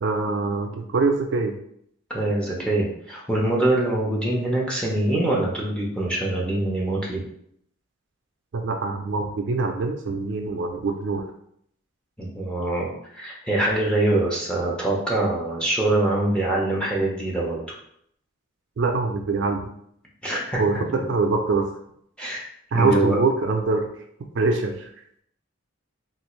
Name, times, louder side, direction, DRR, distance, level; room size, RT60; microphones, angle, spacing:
voice 1, 0.0-1.6 8.5-11.2 18.8-19.7 20.6-21.7 22.7-23.9 24.3-24.9, right 3 dB, 55° right, 4 dB, 0.3 m, -24 dB
voice 2, 2.1-7.2 12.2-17.6 20.2-20.6 22.2-22.5 22.7-23.2, right 1 dB, 5° left, -4 dB, 0.6 m, -24 dB
3.3 x 2.4 x 3.0 m, 0.70 s
head